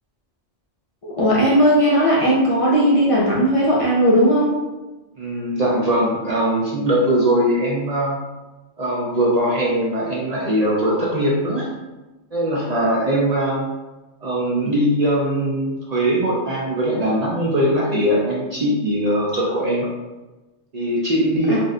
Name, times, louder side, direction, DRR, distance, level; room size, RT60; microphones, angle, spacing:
voice 1, 1.0-4.5 21.5-21.6, equal, 45° left, -6 dB, 0.5 m, -17 dB
voice 2, 5.2-8.2 8.8-11.7 12.3-13.7 14.2-19.9 20.7-21.6, right 1 dB, 50° right, -4 dB, 0.5 m, -21 dB
2.5 x 2.1 x 3.6 m, 1.1 s
omnidirectional pair, 1.2 m